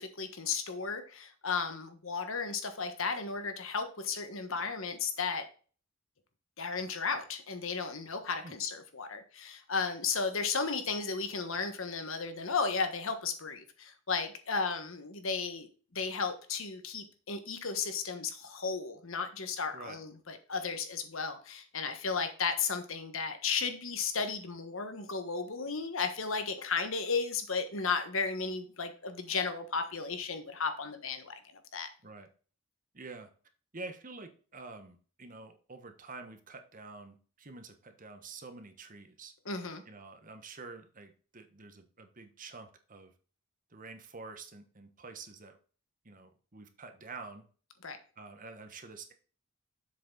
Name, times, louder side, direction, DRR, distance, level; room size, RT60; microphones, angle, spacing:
voice 1, 0.0-5.4 6.6-31.4 31.7-31.9 39.4-39.8 47.8-48.0, left 5 dB, 65° left, 8 dB, 1.4 m, -34 dB
voice 2, 32.9-33.3 33.7-39.3 39.8-43.1 43.7-45.6 46.0-47.4 48.2-49.1, right 3 dB, 40° right, 7 dB, 1.3 m, -48 dB
7.5 x 6.8 x 3.9 m, 0.39 s
head